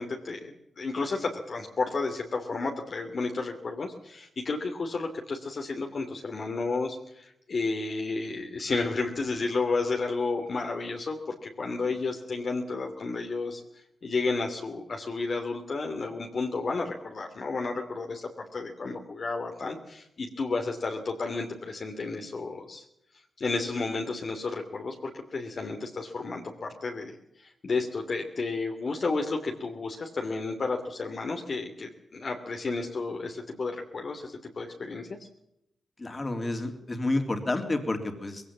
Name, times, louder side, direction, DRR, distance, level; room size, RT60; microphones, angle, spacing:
voice 1, 0.0-13.6 14.0-22.8 23.4-35.2, left 3 dB, 50° left, 2 dB, 2.8 m, -32 dB
voice 2, 36.0-38.5, left 2 dB, 30° left, 5 dB, 3.6 m, -30 dB
21.0 x 17.0 x 7.4 m, 0.80 s
cardioid pair, 90°, 0 cm